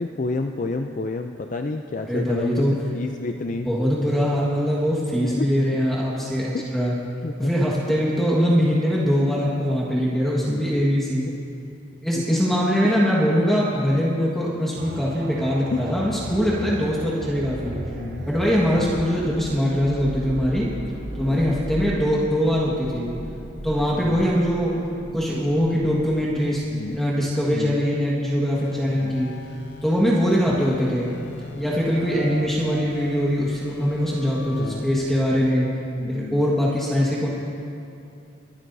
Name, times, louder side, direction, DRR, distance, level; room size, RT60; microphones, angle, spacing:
voice 1, 0.0-3.7 5.2-5.5 6.5-6.7 7.2-7.5 10.4-10.6 12.1-12.6 12.8-12.9 15.7-15.9 16.6-16.7 18.0-18.2 18.7-19.0 21.1-21.6 23.9-24.2 26.7-27.0 27.5-27.8 28.8-29.1 34.5-34.9 36.0-36.4, left 3 dB, 40° left, 5 dB, 0.4 m, -30 dB
voice 2, 2.0-2.7 3.6-7.0 7.4-11.3 12.0-17.8 18.2-20.7 21.1-23.1 23.6-24.7 25.1-26.6 26.9-29.3 29.8-31.1 31.5-35.7 36.1-37.3, equal, ahead, -6 dB, 1.6 m, -22 dB
sound 1, 14.8-28.4 28.9-29.0, right 1 dB, 45° right, 1.1 m, -36 dB
Human voice, 18.1-20.1 21.0-21.1, left 1 dB, 80° right, 2.8 m, -45 dB
sound 2, 28.5-35.5, left 2 dB, 65° left, 1.0 m, -40 dB
24.5 x 12.0 x 2.7 m, 2.6 s
head